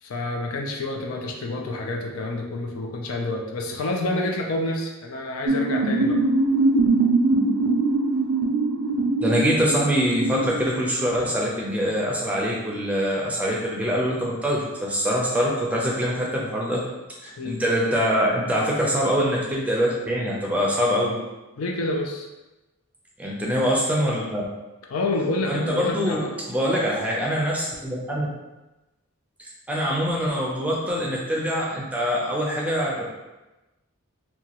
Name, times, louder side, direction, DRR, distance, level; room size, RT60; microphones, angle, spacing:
voice 1, 0.0-6.2 15.4-15.7 17.4-17.6 21.6-22.3 24.9-26.3, left 2 dB, 80° left, 1 dB, 0.5 m, -28 dB
sound 1, 5.5-11.1, right 3 dB, 85° right, 0.4 m, -22 dB
voice 2, 9.2-16.8 17.2-21.2 23.2-24.5 25.5-28.3 29.4-33.1, equal, 5° right, -4 dB, 0.4 m, -24 dB
2.9 x 2.2 x 2.9 m, 1.1 s
head